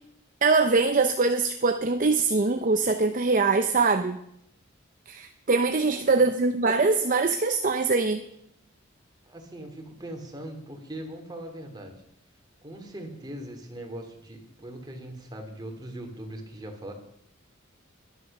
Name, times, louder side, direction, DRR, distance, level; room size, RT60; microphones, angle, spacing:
voice 1, 0.4-4.2 5.1-8.2, right 3 dB, 40° right, 7 dB, 0.7 m, -23 dB
voice 2, 5.7-6.3 9.3-11.9 12.6-16.9, right 1 dB, 20° right, 3 dB, 2.7 m, -40 dB
11.5 x 11.0 x 6.6 m, 0.73 s
head